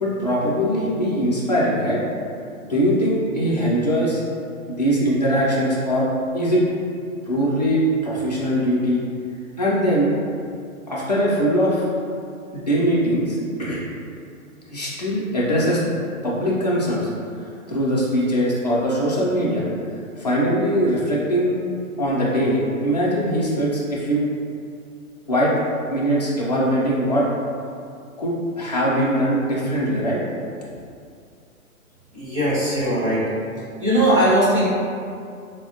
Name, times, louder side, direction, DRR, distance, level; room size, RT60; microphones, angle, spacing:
voice 1, 0.0-2.0 2.7-4.2 4.7-6.1 6.3-6.6 7.3-9.0 9.6-10.1 10.9-11.8 12.5-13.8 14.7-15.8 16.2-17.1 17.7-19.6 20.2-21.6 22.0-24.2 25.3-25.5 25.9-27.3 28.2-30.2, equal, 30° left, -7 dB, 0.4 m, -21 dB
voice 2, 32.1-33.4 33.8-34.7, right 1 dB, 25° right, -10 dB, 0.6 m, -19 dB
4.2 x 2.1 x 2.7 m, 2.4 s
hypercardioid pair, 165°, 43 cm